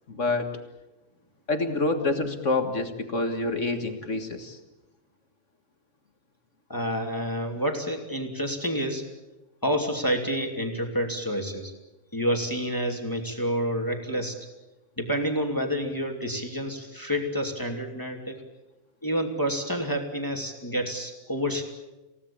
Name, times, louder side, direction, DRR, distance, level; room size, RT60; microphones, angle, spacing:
voice 1, 0.1-0.5 1.5-4.6, left 2 dB, 35° left, 6 dB, 1.4 m, -27 dB
voice 2, 6.7-9.0 9.6-11.7 12.1-14.4 15.0-18.4 19.0-21.6, equal, 5° left, 3 dB, 2.4 m, -28 dB
28.0 x 17.5 x 8.6 m, 1.0 s
omnidirectional pair, 3.6 m